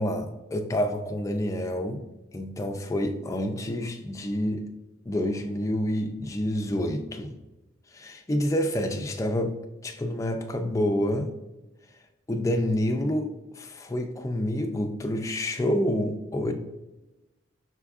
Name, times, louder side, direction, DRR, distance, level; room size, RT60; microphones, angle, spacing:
voice 1, 0.0-2.0 2.3-4.7 5.1-7.4 7.9-11.3 11.9-12.0 12.3-16.5, left 1 dB, 15° left, 4 dB, 0.3 m, -28 dB
5.9 x 3.5 x 2.4 m, 1.0 s
head